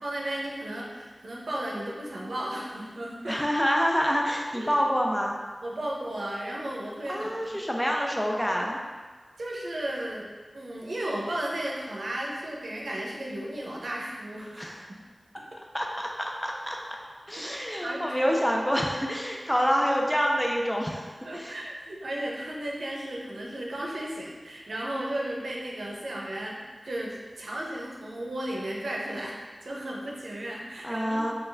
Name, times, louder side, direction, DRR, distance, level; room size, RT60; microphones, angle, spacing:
voice 1, 0.0-3.4 4.5-4.7 5.6-7.9 9.4-10.3 10.5-15.0 17.8-18.2 21.2-31.3, right 1 dB, 90° right, -4 dB, 0.7 m, -34 dB
voice 2, 3.3-5.4 7.1-8.8 14.6-14.8 15.7-17.0 17.3-21.5 30.8-31.3, equal, 10° left, 0 dB, 0.5 m, -27 dB
4.4 x 2.4 x 3.3 m, 1.4 s
wide cardioid pair, 55°, 0 cm